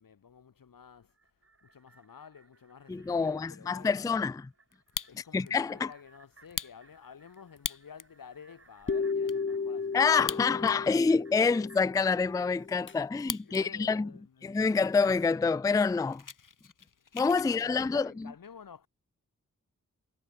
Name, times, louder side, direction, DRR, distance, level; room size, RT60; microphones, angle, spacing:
voice 1, 0.0-4.2 5.1-10.5 11.1-11.4 13.4-15.0 17.0-17.1 17.4-18.9, left 7 dB, 90° left, 4.2 m, -52 dB
sound 1, 1.0-13.6 13.9-14.0, right 4 dB, 45° right, 6.9 m, -63 dB
voice 2, 2.9-4.4 5.3-5.9 9.9-14.1 14.4-16.2 17.1-18.3, left 4 dB, 10° left, 0.3 m, -27 dB
Fire, 4.7-5.5 5.9-6.0 6.4-8.1 8.7-8.8 8.9-9.4 10.1-10.9 11.2-11.3 11.9-13.6 14.0-14.4 15.0-15.1 15.3-15.5 15.8-17.5, left 6 dB, 70° left, 3.2 m, -40 dB
sound 2, 8.9-12.9, left 5 dB, 35° left, 1.1 m, -34 dB
wide cardioid pair, 100°, 33 cm